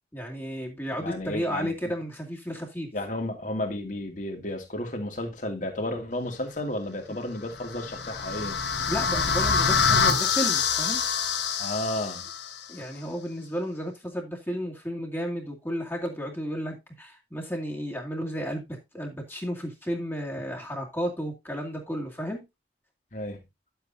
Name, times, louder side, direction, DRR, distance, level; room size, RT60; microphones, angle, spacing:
voice 1, 0.1-2.9 8.9-11.0 12.7-22.4, equal, 15° left, 2.2 m, -33 dB
voice 2, 1.0-1.9 2.9-8.6 11.6-12.2 23.1-23.4, left 1 dB, 45° left, 2.4 m, -32 dB
sound 1, 7.5-12.6, left 6 dB, 85° left, 1.5 m, -25 dB
11.0 x 8.0 x 2.7 m
head